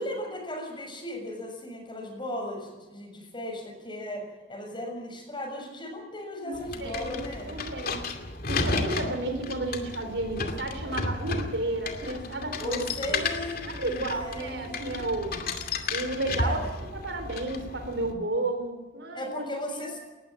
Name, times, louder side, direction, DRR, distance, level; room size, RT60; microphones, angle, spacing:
voice 1, 0.0-7.6 12.6-14.8 16.2-16.7 19.1-20.0, left 1 dB, 25° left, 2 dB, 6.7 m, -36 dB
voice 2, 6.4-8.0 8.5-12.8 13.1-13.2 13.6-15.5 15.9-16.6 17.0-19.5 19.8-19.9, right 2 dB, 85° right, 7 dB, 3.9 m, -32 dB
sound 1, 6.5-18.1, left 3 dB, 55° left, 2.5 m, -33 dB
19.5 x 15.0 x 9.0 m, 1.3 s
head